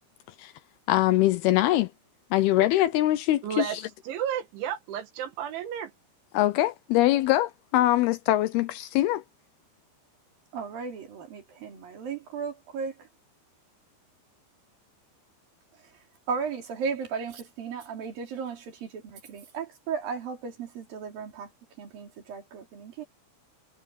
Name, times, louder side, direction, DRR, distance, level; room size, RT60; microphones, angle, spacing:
voice 1, 0.9-1.9 2.3-3.7 6.3-9.2, left 15 dB, 85° left, 2.3 m, -23 dB
voice 2, 3.4-3.8 4.1-5.9, right 10 dB, 85° right, 4.3 m, -32 dB
voice 3, 10.5-13.1 16.3-21.5 21.8-23.0, right 6 dB, 50° right, 5.3 m, -35 dB
omnidirectional pair, 5.2 m